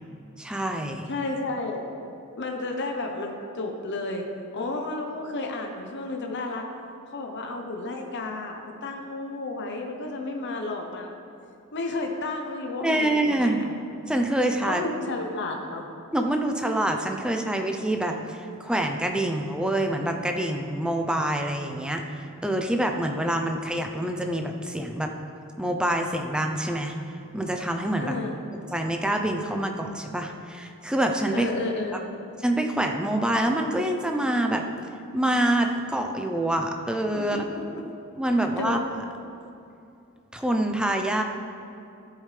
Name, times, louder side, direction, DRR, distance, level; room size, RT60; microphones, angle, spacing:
voice 1, 0.4-1.1 12.8-13.7 14.1-14.8 16.1-25.1 25.6-26.9 27.3-28.2 28.7-31.5 32.4-34.6 35.1-37.4 38.2-38.8 40.3-41.2, right 1 dB, 5° right, 3 dB, 0.6 m, -26 dB
voice 2, 1.1-1.9 2.4-6.7 7.1-11.2 11.7-13.7 14.6-15.9 28.0-28.3 31.3-32.1 37.2-37.8 38.6-38.8, left 2 dB, 55° left, 2 dB, 0.8 m, -32 dB
14.0 x 7.8 x 3.3 m, 2.7 s
head